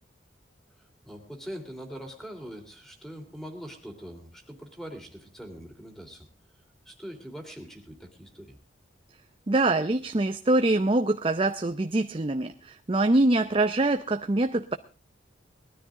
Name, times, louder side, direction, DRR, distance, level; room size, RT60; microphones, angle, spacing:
voice 1, 0.8-6.3 6.8-8.5, equal, ahead, 4 dB, 3.1 m, -42 dB
voice 2, 9.5-14.7, right 2 dB, 30° right, 7 dB, 0.6 m, -24 dB
20.0 x 13.0 x 3.7 m, 0.35 s
head